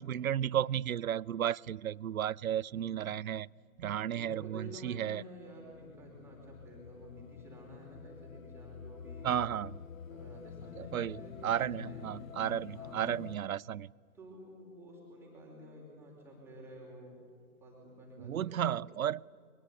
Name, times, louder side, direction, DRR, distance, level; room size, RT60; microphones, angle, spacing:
voice 1, 0.0-3.5 3.8-5.2 9.2-9.8 10.8-13.9 18.2-19.2, right 10 dB, 70° right, 0.5 m, -33 dB
voice 2, 2.7-3.1 4.1-9.4 10.1-11.5 11.8-12.2 12.7-13.1 14.1-17.2 17.6-18.9, equal, 5° right, 4.7 m, -51 dB
sound 1, 4.7-13.4, left 7 dB, 65° left, 0.9 m, -48 dB
23.0 x 22.5 x 9.7 m
figure-of-eight pair, 145°, 44 cm